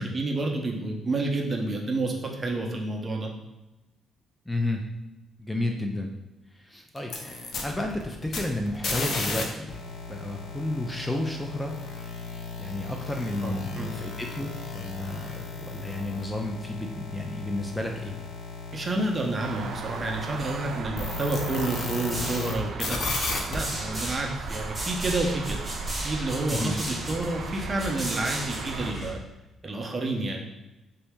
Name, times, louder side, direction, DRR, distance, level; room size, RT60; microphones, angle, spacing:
voice 1, 0.0-3.3 13.4-13.9 18.7-23.0 23.5-25.7 26.0-29.2 29.6-30.5, right 2 dB, 30° right, 1 dB, 0.7 m, -29 dB
voice 2, 4.5-4.8 5.4-6.1 6.5-9.7 10.1-11.8 12.6-18.2 26.5-26.7, left 1 dB, 10° left, 2 dB, 0.5 m, -32 dB
sound 1, 7.0-9.4 9.7-22.5 22.8-23.6, left 4 dB, 65° left, 0.7 m, -35 dB
sound 2, 19.4-28.9, right 4 dB, 75° right, 0.4 m, -37 dB
sound 3, 19.7-19.9 20.2-21.2 21.9-29.1, right 1 dB, 10° right, 1.3 m, -36 dB
4.0 x 2.8 x 3.5 m, 1.0 s
cardioid pair, 90°, 0 cm